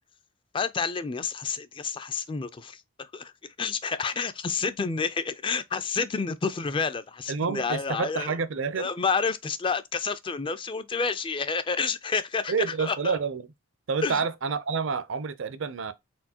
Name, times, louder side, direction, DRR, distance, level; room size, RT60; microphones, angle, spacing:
voice 1, 0.5-3.3 3.6-8.3 8.8-12.5 12.8-13.2 14.0-14.2, left 5 dB, 25° left, 0.3 m, -29 dB
voice 2, 7.3-8.9 12.5-13.4 13.9-15.9, right 5 dB, 65° right, 0.5 m, -28 dB
4.4 x 4.0 x 2.8 m
head